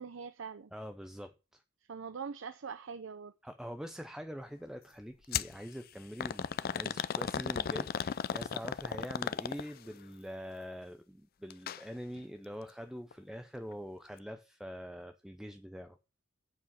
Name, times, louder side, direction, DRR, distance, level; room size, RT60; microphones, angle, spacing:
voice 1, 0.0-0.7 1.9-3.3, right 6 dB, 75° right, 0.5 m, -42 dB
voice 2, 0.7-1.6 3.4-16.0, equal, 5° right, 0.5 m, -44 dB
sound 1, 5.3-5.5 6.2-9.9 11.5-11.8 12.2-12.3 13.1-13.2, left 7 dB, 50° left, 0.4 m, -35 dB
8.5 x 4.9 x 6.3 m
head